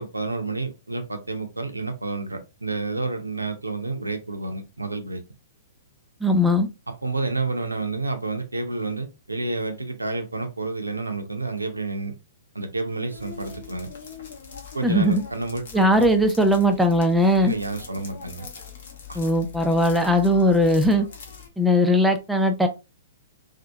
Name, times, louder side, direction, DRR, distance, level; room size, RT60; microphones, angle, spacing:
voice 1, 0.0-5.2 6.9-12.2 12.5-13.9 14.7-15.9 17.3-18.5 19.1-19.2, right 3 dB, 80° right, 0.5 m, -30 dB
voice 2, 6.2-6.7 14.8-15.2 15.7-17.5 19.1-21.1 21.6-22.7, equal, 5° right, 0.4 m, -19 dB
sound 1, 13.1-21.5, left 6 dB, 55° left, 0.8 m, -42 dB
2.7 x 2.4 x 2.3 m
figure-of-eight pair, 110°, 0 cm